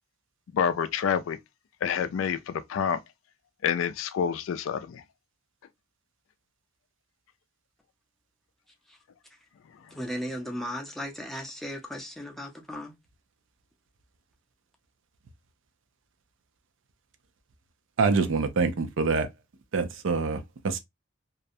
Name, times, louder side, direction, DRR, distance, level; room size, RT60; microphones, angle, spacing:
voice 1, 0.5-1.4 1.8-3.0 3.6-5.0, left 7 dB, 70° left, 0.3 m, -28 dB
voice 2, 9.9-12.9, equal, ahead, 0.5 m, -36 dB
voice 3, 18.0-19.3 19.7-20.8, right 4 dB, 65° right, 0.5 m, -25 dB
2.4 x 2.1 x 2.6 m
head